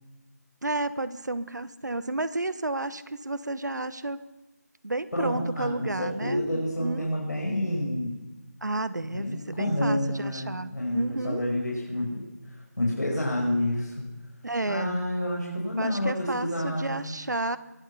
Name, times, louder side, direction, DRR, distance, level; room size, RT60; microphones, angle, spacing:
voice 1, 0.6-4.2 4.8-7.1 8.6-11.4 14.4-14.9 15.8-17.6, right 2 dB, 80° right, 14 dB, 1.1 m, -31 dB
voice 2, 5.1-8.1 9.0-12.3 12.8-14.1 14.7-17.0, left 1 dB, 75° left, -3 dB, 5.3 m, -29 dB
23.0 x 9.2 x 5.9 m, 1.1 s
figure-of-eight pair, 180°, 9 cm